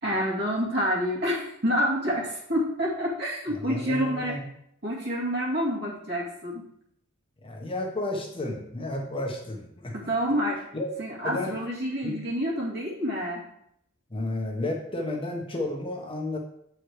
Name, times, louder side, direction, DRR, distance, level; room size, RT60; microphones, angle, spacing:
voice 1, 0.0-4.4 4.8-6.6 9.9-10.6 11.0-13.4, equal, 55° right, -4 dB, 2.5 m, -28 dB
voice 2, 3.5-4.5 7.4-9.9 10.7-10.9 11.2-11.5 12.0-12.1 14.1-16.4, left 2 dB, 25° left, 0 dB, 1.2 m, -32 dB
7.8 x 4.9 x 4.7 m, 0.72 s
head